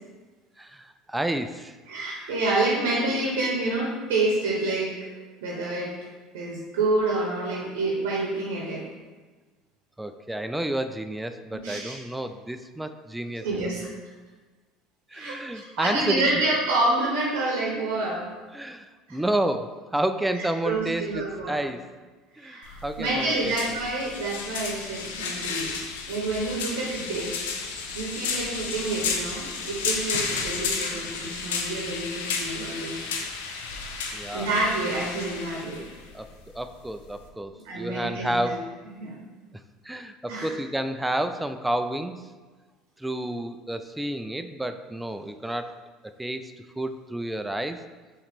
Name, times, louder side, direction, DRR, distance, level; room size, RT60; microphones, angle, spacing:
voice 1, 0.6-1.8 2.1-2.3 10.0-13.7 15.1-16.3 18.5-21.9 22.4-23.8 34.1-34.5 36.1-36.3 36.5-38.7 39.8-42.3 43.0-45.7 46.0-47.8, right 1 dB, 10° right, 9 dB, 0.3 m, -30 dB
voice 2, 1.9-5.1 5.4-5.9 6.3-8.8 11.5-11.9 13.4-13.9 15.1-15.4 15.7-18.2 19.1-19.2 20.4-21.6 22.4-25.7 26.1-27.6 27.9-33.1 34.3-35.8 37.6-38.6 38.9-39.1 40.3-40.5, right 2 dB, 80° right, -3 dB, 0.8 m, -28 dB
sound 1, 22.6-37.3, left 5 dB, 80° left, 0.5 m, -32 dB
4.7 x 3.1 x 3.5 m, 1.3 s
hypercardioid pair, 75°, 0 cm